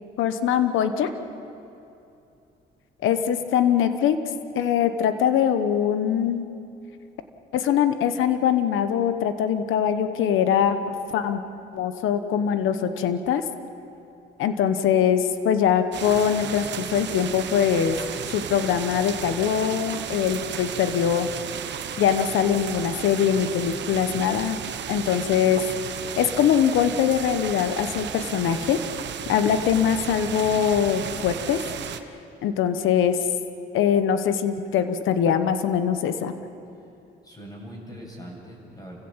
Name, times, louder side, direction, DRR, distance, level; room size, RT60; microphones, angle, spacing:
voice 1, 0.2-1.1 3.0-4.2 4.6-6.5 7.5-11.4 11.7-13.4 14.4-18.0 18.3-21.3 22.0-24.6 24.9-25.6 26.2-28.8 29.3-31.6 32.4-33.2 33.7-36.3, left 8 dB, 85° left, 9 dB, 1.2 m, -22 dB
sound 1, 15.9-32.0, right 8 dB, 65° right, 1.2 m, -34 dB
voice 2, 37.2-39.0, equal, 20° left, -1 dB, 7.5 m, -41 dB
29.0 x 16.0 x 7.4 m, 2.7 s
cardioid pair, 90°, 20 cm